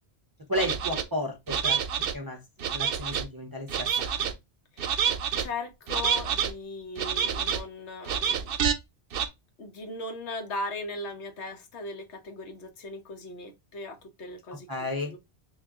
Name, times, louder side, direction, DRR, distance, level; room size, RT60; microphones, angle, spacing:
voice 1, 0.5-1.8 2.1-4.3 14.7-15.2, left 1 dB, 35° right, 0.3 m, -33 dB
sound 1, 0.6-1.0 1.5-2.1 2.6-3.3 3.7-4.3 4.8-5.4 5.9-6.5 7.0-7.6 8.1-8.7 9.1-9.3, right 7 dB, 65° right, 0.7 m, -27 dB
voice 2, 4.7-5.1 5.4-8.5 9.6-14.7 15.0-15.2, left 2 dB, 85° left, 1.1 m, -38 dB
3.5 x 2.4 x 3.5 m
omnidirectional pair, 1.1 m